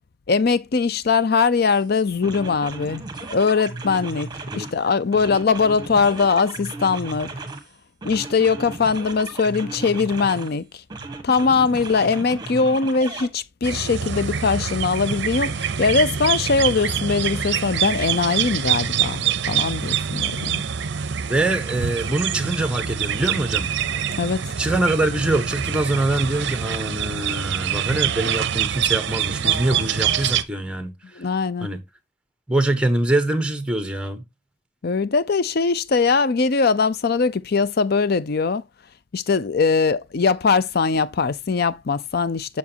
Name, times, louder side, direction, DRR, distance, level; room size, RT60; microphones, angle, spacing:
voice 1, 0.3-3.0 3.3-7.3 8.0-10.7 11.2-20.6 24.2-24.4 31.2-31.7 34.8-38.6 39.1-42.6, left 4 dB, 50° left, 0.5 m, -21 dB
sound 1, 1.7-1.8 2.2-4.8 5.1-7.7 8.0-10.5 10.9-13.3, right 3 dB, 20° right, 1.3 m, -35 dB
voice 2, 4.5-4.9 21.3-23.7 24.6-30.9 31.6-31.8 32.5-34.2, right 2 dB, 5° right, 1.0 m, -24 dB
sound 2, 13.6-30.4, right 8 dB, 60° right, 0.6 m, -25 dB
7.2 x 7.0 x 2.8 m
head